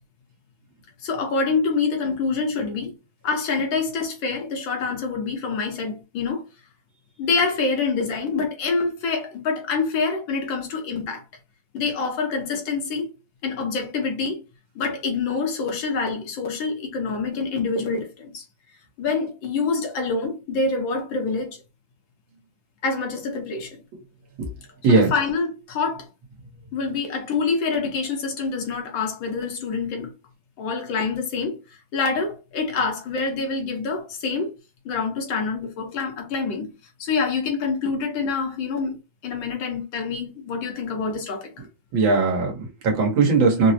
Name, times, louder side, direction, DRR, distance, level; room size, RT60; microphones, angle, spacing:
voice 1, 1.0-2.9 3.2-6.4 7.2-11.2 11.7-13.1 13.4-14.4 14.8-18.5 19.0-21.6 22.8-23.8 24.9-26.1 26.7-30.1 30.6-31.6 31.9-34.5 34.9-36.7 37.0-39.0 39.2-41.5, left 4 dB, 75° left, 1.7 m, -26 dB
voice 2, 41.9-43.7, right 4 dB, 75° right, 1.8 m, -19 dB
4.5 x 2.0 x 2.7 m
omnidirectional pair, 2.2 m